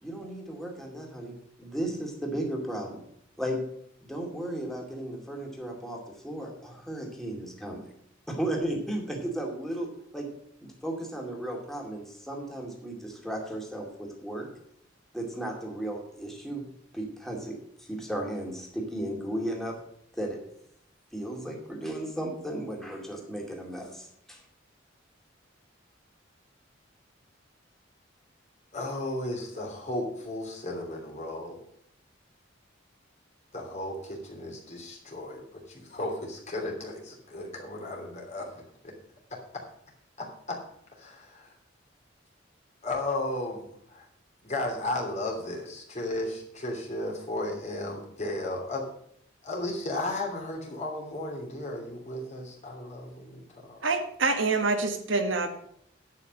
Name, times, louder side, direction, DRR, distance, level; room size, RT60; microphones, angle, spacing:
voice 1, 0.0-3.0 3.4-3.6 4.0-7.9 8.3-10.3 10.6-14.5 15.1-16.6 16.9-19.8 20.1-20.4 21.1-24.4, right 1 dB, ahead, 0 dB, 2.4 m, -35 dB
voice 2, 28.7-31.6 33.5-38.9 39.3-39.6 40.2-40.6 41.0-41.5 42.8-43.6 43.9-44.0 44.4-48.9 49.4-53.8, left 1 dB, 40° left, 0 dB, 3.1 m, -34 dB
voice 3, 53.8-55.5, right 3 dB, 85° right, 6 dB, 1.5 m, -26 dB
11.0 x 5.9 x 7.3 m, 0.69 s
head